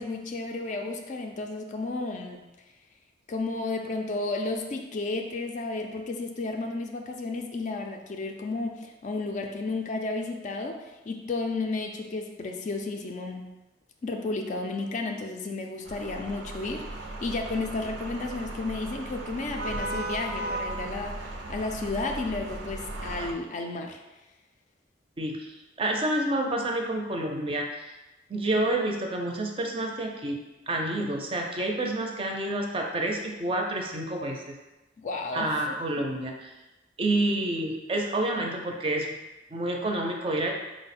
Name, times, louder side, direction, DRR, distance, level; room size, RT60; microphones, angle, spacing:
voice 1, 0.0-2.4 3.3-13.5 14.0-21.2 21.5-24.0 35.0-35.5, left 3 dB, 40° left, 3 dB, 0.4 m, -32 dB
sound 1, 15.9-23.3, right 2 dB, 85° right, 0.5 m, -36 dB
voice 2, 25.2-25.5 25.8-27.9 28.3-30.4 30.7-34.5 35.3-36.5 37.0-39.1 39.5-40.5, right 1 dB, 30° right, 1 dB, 0.5 m, -28 dB
4.5 x 2.1 x 4.1 m, 1.1 s
head